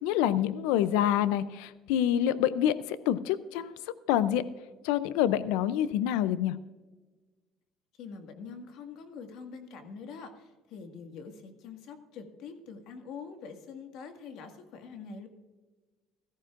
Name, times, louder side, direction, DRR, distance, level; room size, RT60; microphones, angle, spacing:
voice 1, 0.0-3.7 4.1-4.5 4.8-6.6, left 11 dB, 90° left, 15 dB, 0.5 m, -27 dB
voice 2, 8.0-15.3, left 5 dB, 70° left, 6 dB, 1.8 m, -45 dB
17.0 x 14.0 x 2.5 m, 1.3 s
cardioid pair, 115°, 0 cm